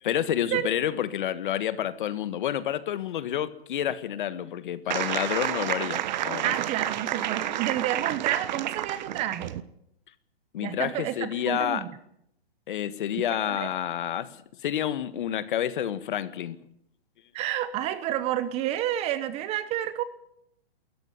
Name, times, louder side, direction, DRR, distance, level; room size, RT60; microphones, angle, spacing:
voice 1, 0.0-6.5 10.5-11.9 12.7-14.4 14.6-16.6, left 10 dB, 55° left, 15 dB, 1.5 m, -29 dB
sound 1, 4.9-9.6, right 12 dB, 45° right, 1.2 m, -30 dB
voice 2, 6.4-9.6 10.6-11.9 13.2-13.7 17.3-20.0, right 12 dB, 20° right, 14 dB, 1.0 m, -30 dB
19.5 x 14.0 x 9.8 m, 0.75 s
hypercardioid pair, 150°, 31 cm